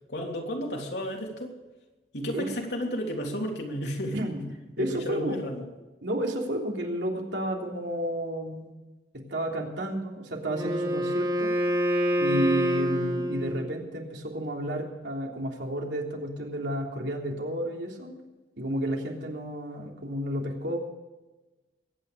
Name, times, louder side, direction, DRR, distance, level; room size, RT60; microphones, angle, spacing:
voice 1, 0.1-1.6 2.1-4.2 4.8-5.7, equal, 75° left, 0 dB, 3.3 m, -32 dB
voice 2, 4.8-5.4 6.0-8.7 9.1-11.5 12.2-18.2 18.6-20.8, right 1 dB, 85° right, 0 dB, 3.3 m, -31 dB
Wind instrument woodwind instrument, 10.5-13.8, equal, 25° right, 2.5 m, -27 dB
22.5 x 9.7 x 5.1 m, 1.1 s
head